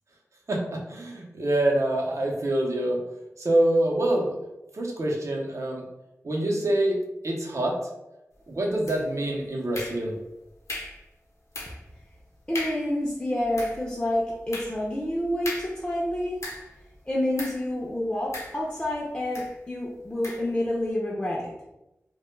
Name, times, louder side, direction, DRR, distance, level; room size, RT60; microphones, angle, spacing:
voice 1, 0.5-3.0 3.4-4.4 4.7-5.8 6.2-7.0 7.2-7.8 8.5-10.2, right 1 dB, 70° right, -1 dB, 0.6 m, -25 dB
sound 1, 8.9-9.3 9.7-10.3 10.7-11.1 11.5-11.9 12.2-12.3 12.5-13.0 13.4-16.8 17.4-17.7 18.3-18.9 19.3-19.6 20.2-20.5, left 1 dB, 65° left, 0.7 m, -38 dB
voice 2, 12.5-16.4 17.1-21.5, left 1 dB, 20° left, -5 dB, 0.5 m, -28 dB
2.2 x 2.1 x 3.1 m, 0.92 s
wide cardioid pair, 70°, 5 cm